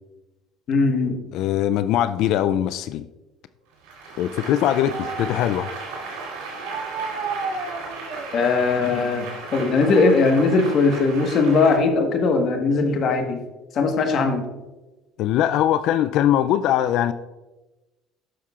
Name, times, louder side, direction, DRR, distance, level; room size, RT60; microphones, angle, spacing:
voice 1, 0.7-1.2 8.3-9.3 9.5-13.4 13.7-14.4, left 4 dB, 50° left, 1.3 m, -19 dB
voice 2, 1.3-3.1 4.2-5.7 15.2-17.1, left 11 dB, 65° left, 0.3 m, -21 dB
Applause, 3.8-11.8, right 4 dB, 85° right, 2.8 m, -33 dB
12.5 x 6.4 x 2.4 m
supercardioid pair, 90°, 0 cm